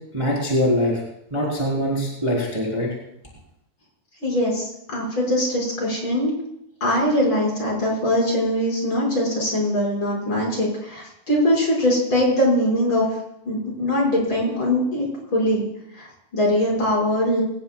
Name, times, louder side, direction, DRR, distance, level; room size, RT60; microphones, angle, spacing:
voice 1, 0.1-1.0 1.3-2.9, equal, 5° right, -4 dB, 3.8 m, -23 dB
voice 2, 4.2-6.3 6.8-13.1 13.4-15.7 15.9-17.4, left 1 dB, 30° left, -3 dB, 6.5 m, -22 dB
24.0 x 18.5 x 2.4 m, 0.76 s
omnidirectional pair, 4.8 m